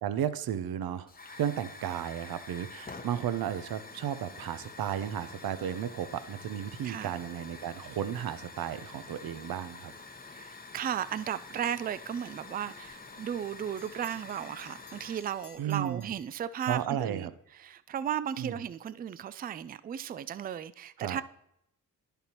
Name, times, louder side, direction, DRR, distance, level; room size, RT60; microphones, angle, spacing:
voice 1, 0.0-9.9 15.6-16.1 16.7-17.3 18.4-18.6 21.0-21.2, right 10 dB, 55° right, 0.7 m, -34 dB
Hiss / Fire, 1.1-15.6, left 3 dB, 20° left, 1.0 m, -48 dB
voice 2, 10.3-17.3 17.6-21.2, right 9 dB, 25° right, 0.3 m, -35 dB
Bell, 13.1-16.9, left 7 dB, 65° left, 1.3 m, -58 dB
11.0 x 6.8 x 3.0 m
hypercardioid pair, 45°, 44 cm